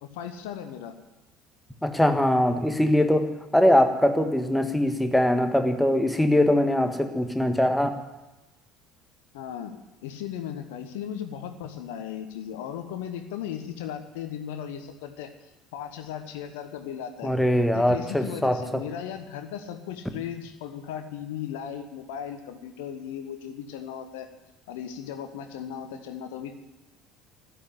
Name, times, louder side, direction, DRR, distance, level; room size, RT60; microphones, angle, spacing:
voice 1, 0.0-0.9 9.3-15.3 15.7-17.3 17.7-24.3 24.7-26.6, left 9 dB, 65° left, 7 dB, 1.2 m, -36 dB
voice 2, 1.8-3.3 3.5-7.9 17.2-18.8, left 1 dB, 5° left, 6 dB, 1.6 m, -22 dB
12.5 x 9.8 x 9.7 m, 1.0 s
figure-of-eight pair, 60°, 0 cm